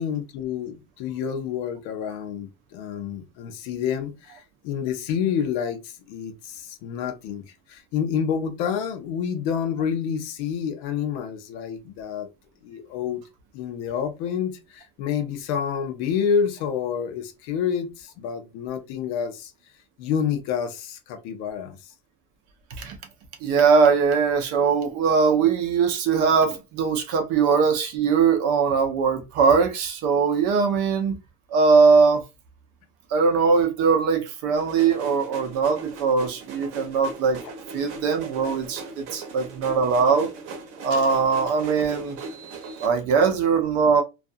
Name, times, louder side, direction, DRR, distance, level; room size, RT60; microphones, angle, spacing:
voice 1, 0.0-7.4 7.7-12.3 12.6-13.2 13.5-19.5 20.0-21.8, left 7 dB, 55° left, 0.6 m, -28 dB
voice 2, 23.4-31.1 31.5-32.2 33.1-37.4 37.7-40.3 40.8-42.2 42.8-44.0, right 5 dB, 40° right, 0.6 m, -21 dB
sound 1, 34.5-42.9, right 4 dB, 70° right, 0.9 m, -39 dB
2.4 x 2.3 x 2.5 m
cardioid pair, 170°, 37 cm